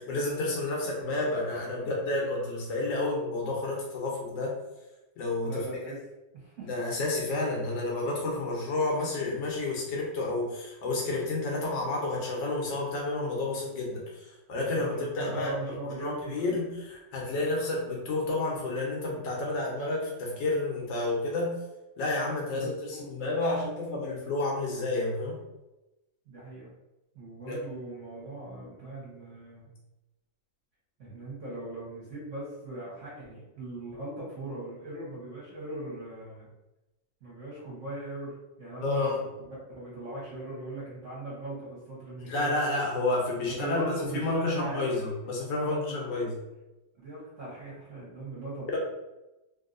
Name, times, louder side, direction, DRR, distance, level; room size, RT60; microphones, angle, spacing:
voice 1, 0.1-4.5 5.2-5.6 6.6-15.5 16.0-16.7 17.1-21.5 22.0-25.4 27.5-27.6 38.8-39.2 42.3-46.3, left 2 dB, 90° left, -2 dB, 1.5 m, -30 dB
voice 2, 5.4-6.0 6.3-6.7 14.7-16.6 22.5-23.1 26.2-26.7 27.1-29.7 31.0-36.5 37.2-42.6 43.6-44.9 45.6-46.2 46.9-48.7, right 1 dB, 50° right, -7 dB, 1.3 m, -39 dB
3.4 x 2.7 x 2.5 m, 1.0 s
omnidirectional pair, 1.9 m